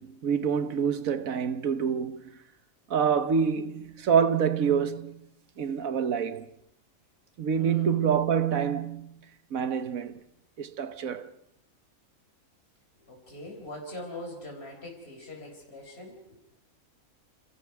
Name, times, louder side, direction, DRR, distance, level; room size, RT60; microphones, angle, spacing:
voice 1, 0.0-2.2 2.9-5.2 5.6-6.5 7.4-9.1 9.5-10.2 10.6-11.3, right 7 dB, 80° right, 1.6 m, -26 dB
voice 2, 7.6-8.0 13.0-16.4, left 1 dB, 50° left, 4.7 m, -42 dB
28.5 x 28.5 x 4.7 m
omnidirectional pair, 1.4 m